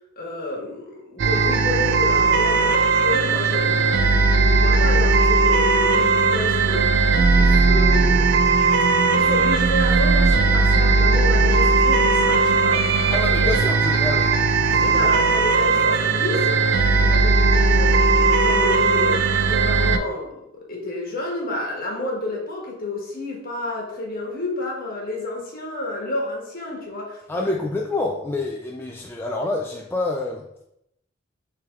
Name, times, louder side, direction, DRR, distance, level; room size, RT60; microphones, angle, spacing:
voice 1, 0.2-8.3 9.1-13.5 14.7-16.6 16.9-27.5, left 2 dB, 45° left, -1 dB, 1.3 m, -30 dB
sound 1, 1.2-20.0, right 3 dB, 60° right, 0.4 m, -18 dB
voice 2, 12.9-15.1 27.3-30.4, left 2 dB, 10° left, -1 dB, 0.3 m, -28 dB
6.6 x 3.4 x 2.3 m, 0.79 s
head